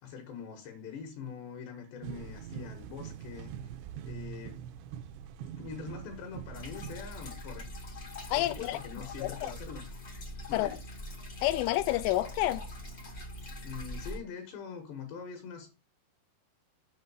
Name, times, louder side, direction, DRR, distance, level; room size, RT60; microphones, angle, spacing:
voice 1, 0.0-3.5 4.1-4.6 5.6-7.7 8.3-9.9 10.5-10.8 13.6-15.7, left 6 dB, 70° left, 3.5 m, -43 dB
sound 1, 2.0-7.0, right 9 dB, 80° right, 2.5 m, -43 dB
sound 2, 6.5-14.2, left 1 dB, 50° left, 1.1 m, -43 dB
voice 2, 8.3-8.8 9.2-9.5 10.5-10.7 11.4-12.6, left 16 dB, 90° left, 3.2 m, -29 dB
7.9 x 5.5 x 5.5 m
omnidirectional pair, 5.6 m